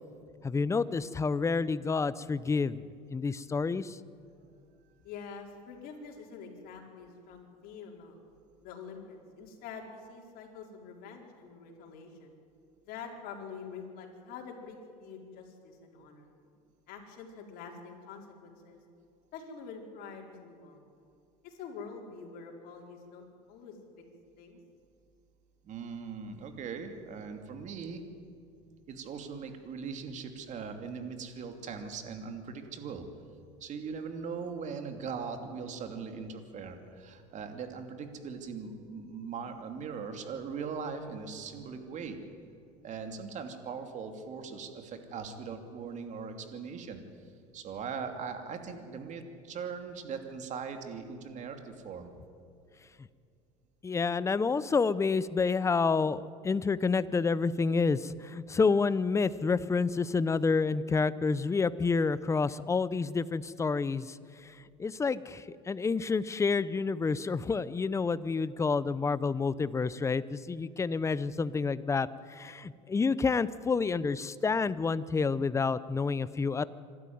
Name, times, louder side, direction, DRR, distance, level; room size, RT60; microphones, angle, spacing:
voice 1, 0.4-2.8 3.1-4.0 53.8-76.6, left 4 dB, 15° left, 17 dB, 0.7 m, -29 dB
voice 2, 5.0-8.2 8.6-12.3 12.8-16.3 16.9-18.8 19.3-20.9 21.4-23.8 24.4-24.6, left 5 dB, 60° left, 1 dB, 4.4 m, -46 dB
voice 3, 25.6-28.1 28.9-33.0 33.6-42.2 42.8-47.0 47.5-52.1, right 5 dB, 45° right, 6 dB, 2.8 m, -40 dB
26.0 x 12.5 x 9.5 m, 2.4 s
supercardioid pair, 100°, 17 cm